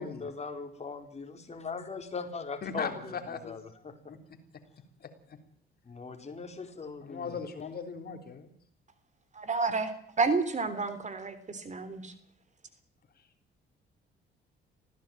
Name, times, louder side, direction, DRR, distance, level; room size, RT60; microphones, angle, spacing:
voice 1, 0.0-3.1 3.4-3.9 5.8-7.4, left 4 dB, 35° left, 5 dB, 4.7 m, -40 dB
voice 2, 2.6-3.6 4.1-4.2 5.0-5.4 7.0-8.5, left 5 dB, 50° left, 6 dB, 3.4 m, -38 dB
voice 3, 9.4-12.1, right 4 dB, 35° right, 13 dB, 3.5 m, -30 dB
20.0 x 15.5 x 9.1 m, 0.62 s
cardioid pair, 90°, 20 cm